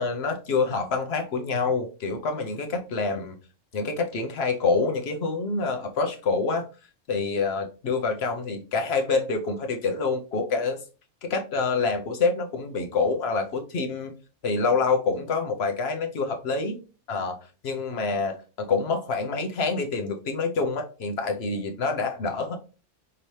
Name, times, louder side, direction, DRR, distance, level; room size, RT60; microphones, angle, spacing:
voice 1, 0.0-3.4 3.7-6.6 7.1-10.8 11.3-14.1 14.4-16.8 17.1-17.4 17.6-22.6, left 4 dB, 60° left, 0.9 m, -26 dB
5.4 x 2.7 x 3.1 m
omnidirectional pair, 1.3 m